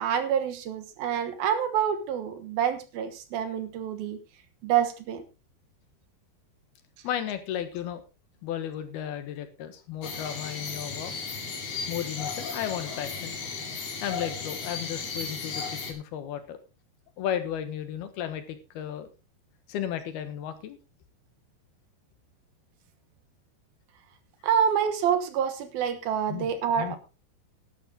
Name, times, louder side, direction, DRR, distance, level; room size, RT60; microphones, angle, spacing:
voice 1, 0.0-4.2 4.6-5.2 24.4-27.0, right 8 dB, 70° right, 10 dB, 2.9 m, -27 dB
voice 2, 7.0-8.0 8.4-11.1 11.9-13.4 14.0-16.6 17.2-19.1 19.7-20.8 26.3-26.5 26.8-27.0, left 10 dB, 75° left, 10 dB, 3.1 m, -34 dB
sound 1, 10.0-15.9, left 5 dB, 45° left, 2.7 m, -35 dB
12.5 x 11.5 x 3.7 m, 0.29 s
omnidirectional pair, 4.7 m